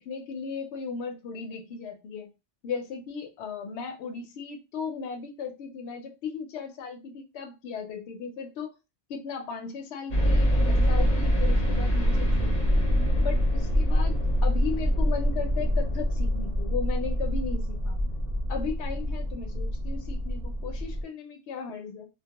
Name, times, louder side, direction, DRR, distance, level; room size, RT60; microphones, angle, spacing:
voice 1, 0.0-2.3 2.6-8.7 9.1-12.8 13.2-18.0 18.5-22.1, left 5 dB, 70° left, 0.8 m, -36 dB
sound 1, 10.1-21.0, equal, 40° left, 0.8 m, -25 dB
2.2 x 2.2 x 2.8 m
omnidirectional pair, 1.2 m